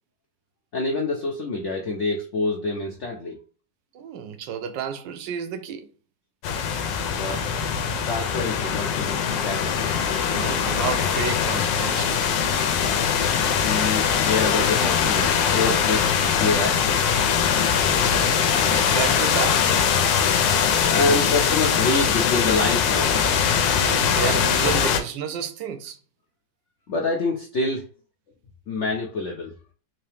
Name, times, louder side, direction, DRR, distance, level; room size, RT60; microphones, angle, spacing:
voice 1, 0.7-3.4 7.1-7.4 8.0-9.9 12.8-13.1 13.5-17.1 20.7-23.6 26.9-27.8 28.7-29.5, left 3 dB, 65° left, 0.7 m, -27 dB
voice 2, 3.9-5.9 10.3-12.2 17.8-19.8 23.8-26.0, right 8 dB, 80° right, 1.3 m, -31 dB
sound 1, 6.4-25.0, left 7 dB, 80° left, 1.3 m, -22 dB
3.7 x 2.8 x 3.4 m
omnidirectional pair, 1.9 m